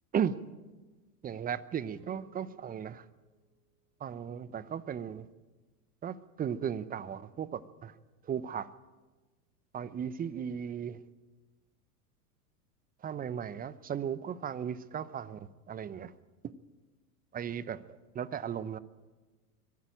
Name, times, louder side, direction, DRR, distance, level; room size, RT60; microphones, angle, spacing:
voice 1, 1.2-3.1 4.0-5.3 6.0-8.0 8.2-8.7 9.7-11.0 13.0-16.1 16.4-16.5 17.3-18.8, right 8 dB, 20° right, 0.8 m, -36 dB
sound 1, 1.9-4.1, right 4 dB, 55° right, 4.4 m, -60 dB
23.0 x 13.5 x 8.9 m
hypercardioid pair, 95°, 46 cm